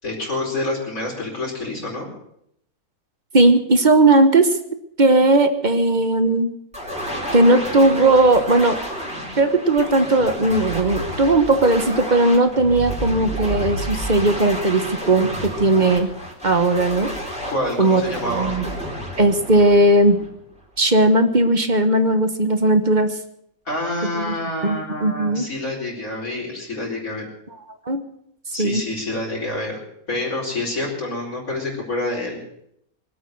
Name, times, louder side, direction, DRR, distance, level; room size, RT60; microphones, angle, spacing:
voice 1, 0.0-2.1 17.5-18.6 23.6-27.2 28.5-29.8 30.1-32.4, left 1 dB, 70° left, -3 dB, 5.1 m, -27 dB
voice 2, 3.3-4.6 5.0-6.5 7.3-8.8 9.4-16.1 16.4-17.1 17.8-18.0 18.3-18.7 19.2-20.2 20.8-23.2 24.1-24.3 24.6-25.5 27.9-28.0 28.6-28.8, right 2 dB, 35° right, 8 dB, 1.2 m, -17 dB
sound 1, 6.7-20.6, equal, 5° right, 4.1 m, -30 dB
24.0 x 8.6 x 6.6 m, 0.73 s
omnidirectional pair, 1.5 m